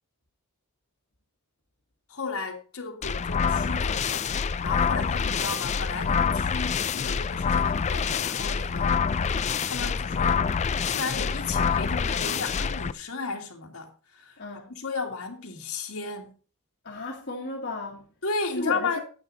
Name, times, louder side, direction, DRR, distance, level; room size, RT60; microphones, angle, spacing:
voice 1, 2.1-4.3 4.6-8.9 9.6-10.4 10.9-14.4 14.7-16.3 18.2-19.0, left 4 dB, 70° left, 2.0 m, -34 dB
sound 1, 3.0-12.9, left 6 dB, 30° left, 0.3 m, -26 dB
voice 2, 14.4-14.7 16.8-18.0 18.6-19.0, left 2 dB, 50° left, 1.6 m, -35 dB
9.7 x 8.6 x 3.9 m
head